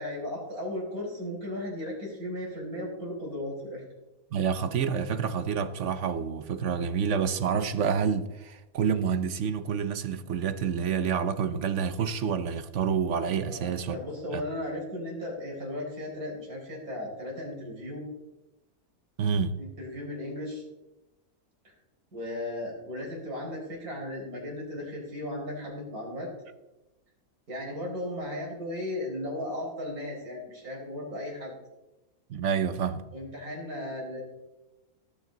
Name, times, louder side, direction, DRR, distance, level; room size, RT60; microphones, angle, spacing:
voice 1, 0.0-3.8 13.5-18.0 19.6-20.6 21.6-21.7 22.1-26.3 27.5-31.5 33.1-34.2, left 1 dB, 85° right, 5.3 m, -36 dB
voice 2, 4.3-14.0 14.3-14.4 19.2-19.6 32.3-33.0, right 7 dB, 60° right, 1.0 m, -28 dB
18.0 x 9.2 x 3.9 m
omnidirectional pair, 1.5 m